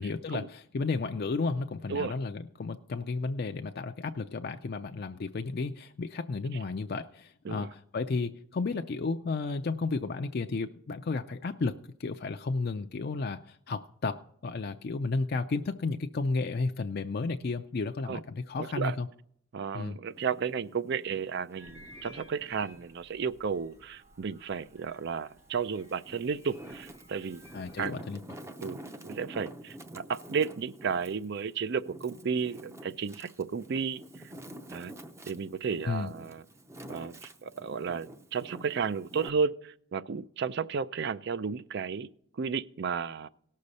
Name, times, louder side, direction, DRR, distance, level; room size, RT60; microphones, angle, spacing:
voice 1, 0.0-14.2 14.4-19.1 19.7-20.0 27.5-28.2 35.9-36.1, left 3 dB, 50° left, 0.4 m, -33 dB
voice 2, 18.6-19.0 19.5-27.4 27.8-28.0 28.6-28.8 29.0-34.0 34.7-34.9 35.3-36.4 36.9-42.1 42.4-43.3, right 6 dB, 55° right, 0.4 m, -33 dB
Wind, 20.1-22.9 23.4-24.7 25.3-39.3, right 1 dB, 15° right, 0.6 m, -48 dB
sound 1, 21.5-27.9, left 1 dB, 90° right, 2.1 m, -56 dB
18.0 x 6.6 x 4.1 m
head